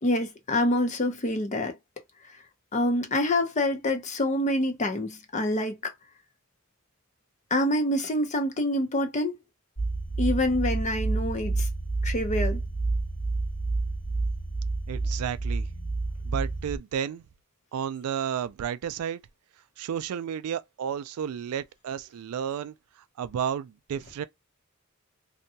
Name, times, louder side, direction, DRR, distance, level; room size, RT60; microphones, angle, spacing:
voice 1, 0.0-1.8 2.7-5.9 7.5-9.4 10.2-11.7 12.0-12.6, left 1 dB, 35° left, 0.6 m, -26 dB
sound 1, 9.8-16.8, right 3 dB, 85° left, 1.4 m, -29 dB
voice 2, 14.9-15.7 16.2-17.3 17.7-19.2 19.8-22.7 23.2-24.2, right 8 dB, 80° right, 0.3 m, -32 dB
2.7 x 2.2 x 2.7 m
head